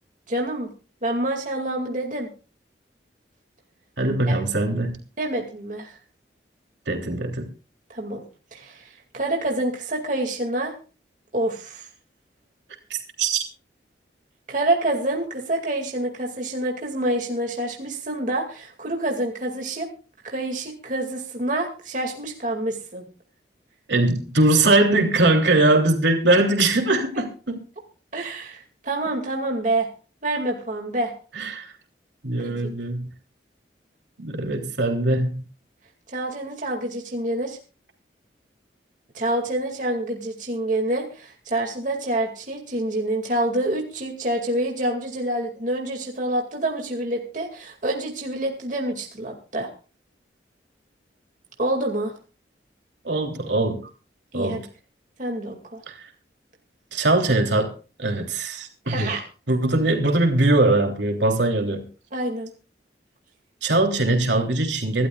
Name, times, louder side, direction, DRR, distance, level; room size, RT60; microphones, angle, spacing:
voice 1, 0.3-0.7 1.0-2.3 4.3-4.4 5.2-5.9 7.9-8.2 8.5-10.7 11.3-11.9 14.5-19.9 20.2-23.1 28.1-29.9 30.2-31.1 32.4-32.7 36.1-37.6 39.1-49.7 51.6-52.1 54.3-54.6 55.2-55.8 58.9-59.2 62.1-62.5, right 1 dB, 45° right, 1 dB, 2.3 m, -27 dB
voice 2, 4.0-4.9 6.9-7.4 12.9-13.4 23.9-27.6 31.3-31.7 32.2-33.1 34.2-35.4 53.0-53.9 54.3-54.6 55.9-56.0 56.9-57.7 58.0-59.1 59.5-61.8 63.6-65.1, right 2 dB, 80° right, 3 dB, 3.2 m, -21 dB
25.0 x 12.5 x 2.4 m, 0.36 s
head